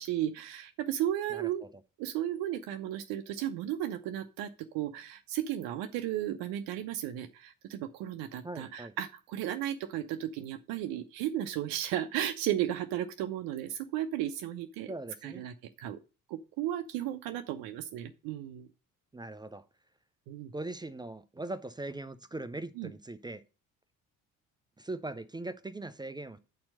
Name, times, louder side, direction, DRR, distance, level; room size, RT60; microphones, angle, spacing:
voice 1, 0.0-1.6 2.0-14.9 15.2-16.0 16.3-18.7 20.3-20.5 22.8-22.9, right 12 dB, 55° right, 0.7 m, -34 dB
voice 2, 8.4-8.9 14.9-15.4 19.1-19.6 20.5-23.4 24.8-26.4, right 2 dB, 10° right, 0.5 m, -40 dB
8.5 x 4.4 x 6.3 m
figure-of-eight pair, 45°, 44 cm